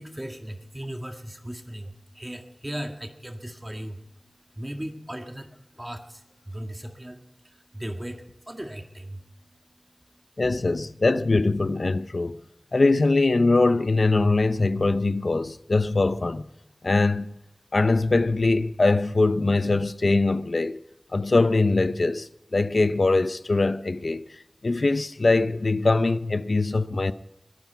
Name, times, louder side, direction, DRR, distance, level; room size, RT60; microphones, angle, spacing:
voice 1, 0.0-4.0 4.6-5.5 5.8-9.2, right 1 dB, 20° right, 1.8 m, -37 dB
voice 2, 10.4-12.4 12.7-16.4 16.8-17.3 17.7-20.8 21.1-27.1, left 3 dB, 65° left, 0.7 m, -22 dB
22.0 x 11.5 x 4.7 m
wide cardioid pair, 55°, 0 cm